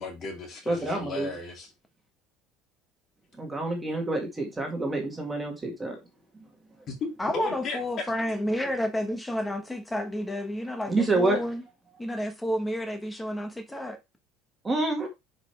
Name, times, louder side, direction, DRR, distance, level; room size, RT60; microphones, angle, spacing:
voice 1, 0.0-1.7 6.9-8.1, left 4 dB, 30° left, 2.7 m, -35 dB
voice 2, 0.7-1.3 3.4-6.0 6.3-6.5 10.9-11.4 14.6-15.1, right 2 dB, 10° right, 2.0 m, -27 dB
voice 3, 7.2-11.6 12.0-14.0, left 1 dB, 5° left, 1.2 m, -30 dB
10.0 x 5.3 x 3.4 m
cardioid pair, 180°, 0 cm